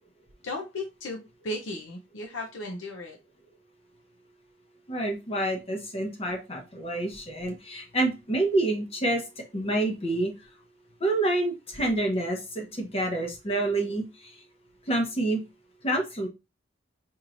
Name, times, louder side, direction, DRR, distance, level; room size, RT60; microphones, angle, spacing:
voice 1, 0.4-3.2, left 1 dB, 85° left, 1 dB, 0.7 m, -35 dB
voice 2, 4.9-9.2 9.5-10.3 11.0-14.0 14.9-15.4 15.8-16.3, right 2 dB, 30° left, 2 dB, 0.9 m, -27 dB
4.6 x 3.0 x 2.5 m, 0.26 s
head